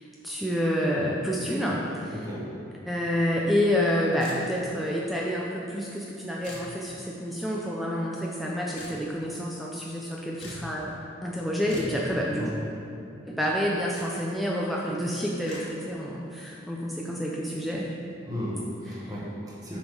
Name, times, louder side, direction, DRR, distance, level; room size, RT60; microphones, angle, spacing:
voice 1, 0.2-2.2 2.9-12.5 13.2-17.9 19.0-19.1 19.7-19.8, equal, ahead, -4 dB, 0.5 m, -28 dB
voice 2, 2.1-2.4 12.4-12.5 18.3-19.8, equal, 20° right, -5 dB, 1.5 m, -34 dB
sound 1, 4.2-4.8 6.4-6.7 8.8-9.0 10.4-10.7 11.7-12.0 13.9-14.1 15.5-15.6, left 1 dB, 70° left, 1.7 m, -42 dB
7.0 x 5.0 x 5.4 m, 2.6 s
head